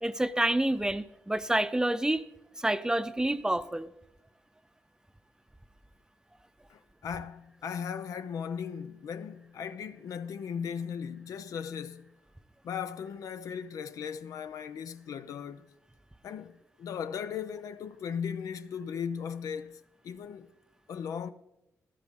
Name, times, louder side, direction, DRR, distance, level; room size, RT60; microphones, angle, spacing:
voice 1, 0.0-2.2 2.6-3.9, right 1 dB, 10° right, 0.6 m, -28 dB
voice 2, 6.7-12.1 12.6-15.6 16.2-20.5 20.9-21.3, left 7 dB, 80° left, 0.6 m, -37 dB
13.5 x 12.5 x 3.6 m
cardioid pair, 65°, 6 cm